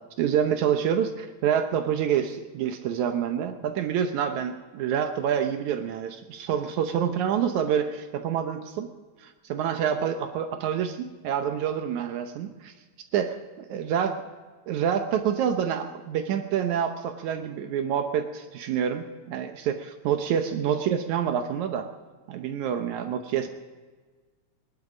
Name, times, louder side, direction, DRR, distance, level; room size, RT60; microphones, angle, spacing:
voice 1, 0.2-8.9 9.2-12.7 13.1-14.2 14.7-21.9 22.3-23.5, right 8 dB, 80° right, 6 dB, 2.3 m, -27 dB
22.5 x 12.0 x 5.0 m, 1.4 s
omnidirectional pair, 3.3 m